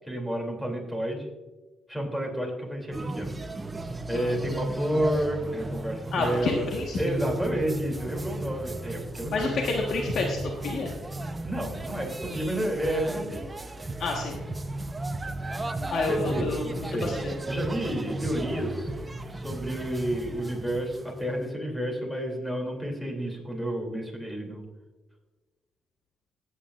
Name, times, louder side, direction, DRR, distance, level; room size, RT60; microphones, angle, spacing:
voice 1, 0.1-1.3 1.9-3.3 4.1-6.7 7.0-9.5 11.4-13.4 16.1-17.2 17.5-18.9 19.3-24.6, right 1 dB, 5° left, 1 dB, 2.9 m, -30 dB
sound 1, 2.9-21.5, right 2 dB, 20° right, 0.7 m, -35 dB
voice 2, 6.1-7.1 9.3-10.9 14.0-14.3 15.9-16.6 16.9-17.3, left 3 dB, 65° left, 0 dB, 1.4 m, -29 dB
16.5 x 8.8 x 2.5 m, 1.2 s
cardioid pair, 90°, 0 cm